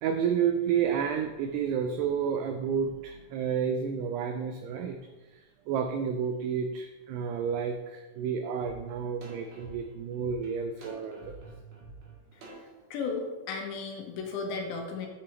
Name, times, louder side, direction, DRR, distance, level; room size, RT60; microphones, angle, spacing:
voice 1, 0.0-5.0 5.3-11.4, right 7 dB, 90° right, 6 dB, 2.3 m, -30 dB
sound 1, 8.6-8.7 9.2-12.8, right 1 dB, 50° right, 2.2 m, -48 dB
voice 2, 12.9-15.1, left 4 dB, 75° left, 2 dB, 3.2 m, -34 dB
10.0 x 9.0 x 3.0 m, 1.2 s
omnidirectional pair, 5.4 m